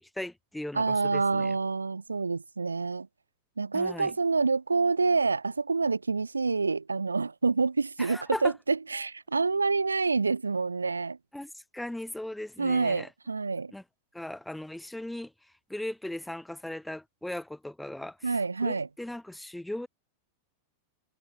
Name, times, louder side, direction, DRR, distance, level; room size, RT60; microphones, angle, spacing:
voice 1, 0.0-1.5 3.7-4.1 8.0-8.5 11.3-13.1 13.7-13.8 14.1-15.3 15.7-19.9, left 1 dB, 5° left, 1.4 m, -38 dB
voice 2, 0.7-3.1 3.6-11.2 12.6-13.7 18.2-18.9, right 4 dB, 80° right, 0.8 m, -27 dB
figure-of-eight pair, 90°, 0 cm